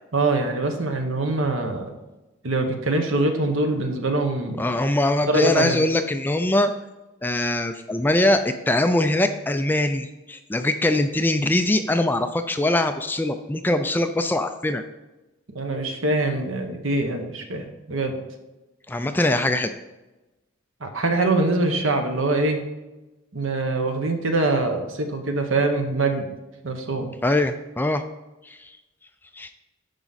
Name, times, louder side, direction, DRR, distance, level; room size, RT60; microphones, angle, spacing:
voice 1, 0.1-1.9 2.4-4.6 5.3-5.8 15.5-18.2 20.8-22.6 23.3-26.3 26.6-27.1, right 2 dB, 75° right, 5 dB, 1.1 m, -24 dB
voice 2, 4.6-6.7 7.2-14.8 18.9-19.7 27.2-28.0 28.5-28.7 29.3-29.5, left 1 dB, 10° left, 8 dB, 0.3 m, -22 dB
10.5 x 5.0 x 4.1 m, 1.1 s
head